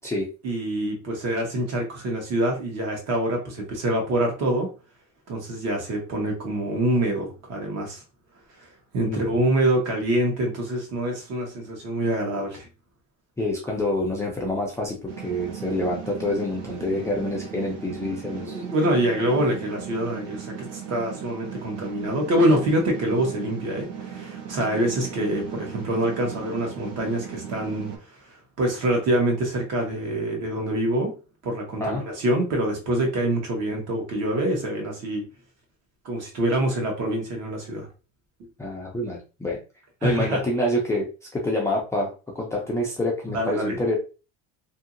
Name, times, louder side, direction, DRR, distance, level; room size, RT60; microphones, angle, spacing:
voice 1, 0.4-4.7 5.3-8.0 8.9-12.7 18.3-31.1 31.4-35.2 36.0-37.9 40.0-40.4 43.3-43.8, right 1 dB, 50° right, 1 dB, 1.1 m, -25 dB
voice 2, 13.4-18.6 31.8-32.0 38.6-39.6 40.0-41.1 41.3-44.0, left 1 dB, 10° left, -3 dB, 0.4 m, -27 dB
sound 1, 15.1-28.0, right 8 dB, 70° right, 1.0 m, -37 dB
2.8 x 2.7 x 2.5 m, 0.33 s
cardioid pair, 160°, 34 cm